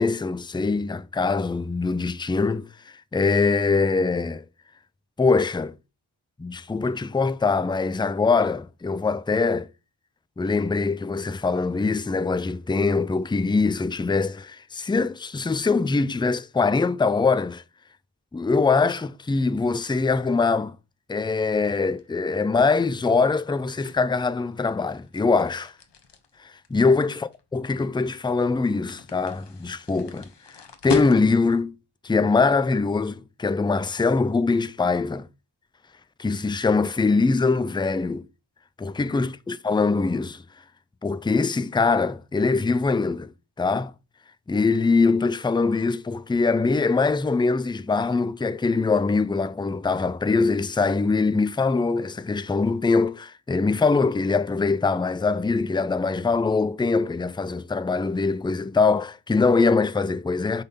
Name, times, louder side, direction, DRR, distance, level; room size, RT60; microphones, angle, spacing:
voice 1, 0.0-2.7 3.1-4.4 5.2-5.7 6.4-9.7 10.4-17.6 18.3-20.7 21.1-25.7 26.7-30.3 30.8-31.7 32.0-35.3 36.2-38.3 38.8-40.4 41.0-43.3 43.6-43.9 44.5-60.6, left 4 dB, 10° left, 0.4 m, -23 dB
sound 1, 21.3-31.7, left 5 dB, 60° left, 1.1 m, -39 dB
5.6 x 5.2 x 4.1 m
wide cardioid pair, 65°, 47 cm